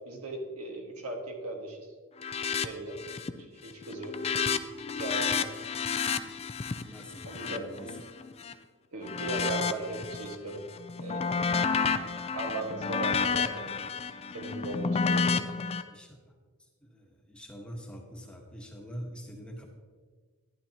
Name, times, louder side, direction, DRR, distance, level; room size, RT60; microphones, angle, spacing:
voice 1, 0.1-1.8 2.6-3.0 3.4-4.1 4.9-5.5 7.2-7.7 8.9-10.6 11.0-11.9 12.3-13.7 14.3-15.5, right 2 dB, 80° right, 1 dB, 1.7 m, -37 dB
sound 1, 2.2-2.7 3.0-3.4 3.7-8.5 9.0-10.4 10.7-15.8, left 5 dB, 25° left, 0.4 m, -30 dB
voice 2, 6.7-8.0 15.9-16.4 16.8-19.6, equal, 5° left, 0 dB, 1.2 m, -45 dB
11.5 x 10.5 x 2.9 m, 1.5 s
head